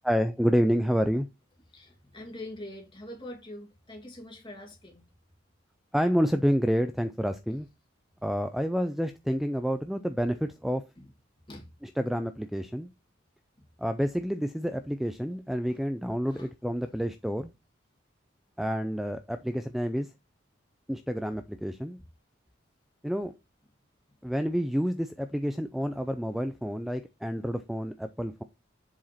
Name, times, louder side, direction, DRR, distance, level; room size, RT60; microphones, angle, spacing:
voice 1, 0.0-1.3 5.9-7.7 8.2-10.8 11.8-12.9 13.8-17.5 18.6-20.1 20.9-22.0 23.0-23.3 24.2-28.4, equal, ahead, 0.3 m, -29 dB
voice 2, 1.7-5.0 11.0-11.1 11.5-11.7 15.7-15.8 16.3-16.5, left 1 dB, 25° left, 2.5 m, -44 dB
7.3 x 4.8 x 4.2 m
head